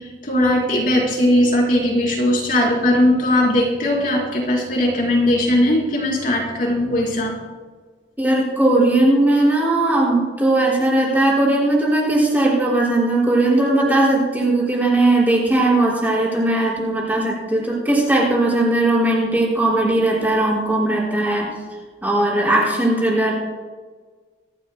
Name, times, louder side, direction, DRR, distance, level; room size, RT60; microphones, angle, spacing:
voice 1, 0.0-7.3, left 1 dB, 45° left, -2 dB, 4.0 m, -19 dB
voice 2, 8.2-21.5 22.0-23.3, right 2 dB, 10° right, -5 dB, 5.2 m, -18 dB
24.5 x 15.0 x 2.2 m, 1.4 s
head